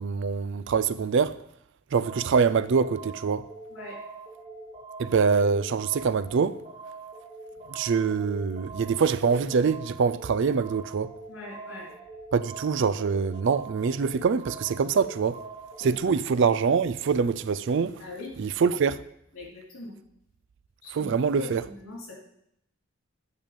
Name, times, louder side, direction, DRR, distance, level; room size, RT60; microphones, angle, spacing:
voice 1, 0.0-1.4 1.9-3.4 5.0-6.6 7.7-11.1 12.3-15.4 15.8-18.0 18.4-19.0 20.9-21.6, right 5 dB, 55° right, 0.4 m, -24 dB
sound 1, 2.0-16.0, right 3 dB, 30° right, 2.3 m, -44 dB
voice 2, 11.3-11.9 15.8-16.2 18.0-18.3 19.3-20.0 20.8-22.1, left 2 dB, 65° left, 3.9 m, -42 dB
8.9 x 6.7 x 5.3 m
head